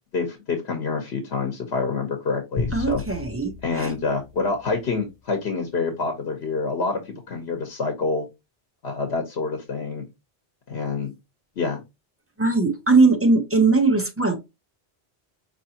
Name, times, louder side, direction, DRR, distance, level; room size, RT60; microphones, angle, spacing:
voice 1, 0.1-3.0 3.6-8.3 8.8-10.0 10.7-11.1 11.6-11.8, left 4 dB, 85° left, 1.2 m, -27 dB
sound 1, 2.6-5.1, left 4 dB, 50° left, 0.4 m, -34 dB
voice 2, 2.7-3.9 12.4-14.4, right 3 dB, 15° right, 0.8 m, -20 dB
5.3 x 3.0 x 2.8 m
omnidirectional pair, 1.0 m